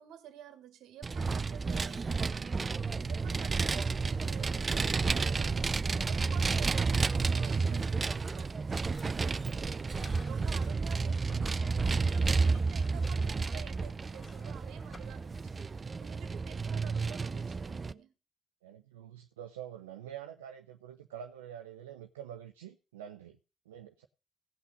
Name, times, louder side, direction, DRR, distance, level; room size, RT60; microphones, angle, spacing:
voice 1, 0.0-18.1, right 10 dB, 75° right, 1.7 m, -51 dB
Vehicle, 1.0-17.9, right 4 dB, 40° right, 0.5 m, -31 dB
sound 1, 8.9-9.3 9.6-11.0 11.3-15.8, left 3 dB, 45° left, 4.1 m, -55 dB
voice 2, 18.6-23.4 23.7-24.1, right 10 dB, 90° right, 0.6 m, -46 dB
17.0 x 5.8 x 5.4 m
hypercardioid pair, 40°, 0 cm